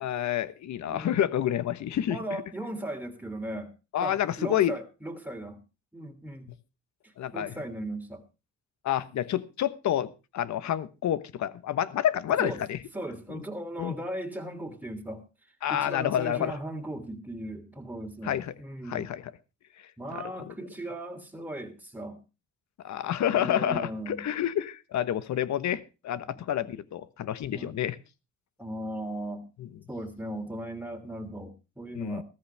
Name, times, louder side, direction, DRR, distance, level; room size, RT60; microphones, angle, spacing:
voice 1, 0.0-2.4 3.9-4.7 7.2-7.5 8.8-10.1 10.3-12.8 13.3-13.4 13.8-14.0 15.6-16.5 18.2-18.5 18.9-19.2 20.1-20.5 22.8-28.0 29.6-29.7 31.9-32.2, left 11 dB, 65° left, 15 dB, 1.2 m, -29 dB
voice 2, 0.9-1.2 2.1-3.7 4.0-5.6 5.9-6.5 7.0-8.2 12.4-12.6 12.9-15.2 15.7-19.1 20.0-22.2 23.3-24.2 26.3-26.7 27.5-27.8 28.6-29.4 29.9-32.2, right 1 dB, 5° right, 4 dB, 3.1 m, -37 dB
15.0 x 14.0 x 3.4 m, 0.30 s
cardioid pair, 90°, 30 cm